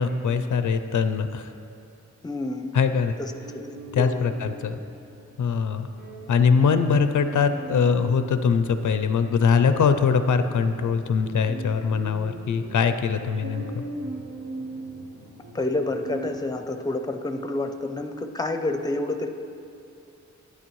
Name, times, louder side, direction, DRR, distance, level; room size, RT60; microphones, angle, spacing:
voice 1, 0.0-1.5 2.7-3.1 3.9-4.8 5.4-5.9 6.3-13.8, left 6 dB, 85° left, 10 dB, 0.5 m, -22 dB
voice 2, 2.2-2.8 3.2-3.6 4.0-4.2 15.5-19.3, left 2 dB, 15° left, 7 dB, 0.5 m, -29 dB
sound 1, 3.3-16.4, right 2 dB, 90° right, 0.8 m, -40 dB
11.0 x 9.5 x 3.1 m, 2.5 s
wide cardioid pair, 100°, 30 cm